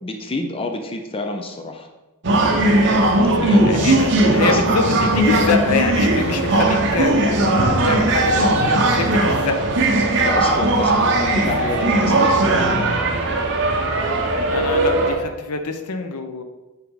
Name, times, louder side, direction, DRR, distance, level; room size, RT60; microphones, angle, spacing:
voice 1, 0.0-1.9 3.3-4.0 4.4-4.7 8.1-8.2 10.1-13.5, left 2 dB, 25° left, 4 dB, 0.6 m, -29 dB
sound 1, 2.2-15.1, right 2 dB, 55° right, 1.0 m, -18 dB
voice 2, 3.6-9.7 14.5-16.4, left 4 dB, 75° left, 7 dB, 0.7 m, -25 dB
8.0 x 3.8 x 4.8 m, 1.1 s
head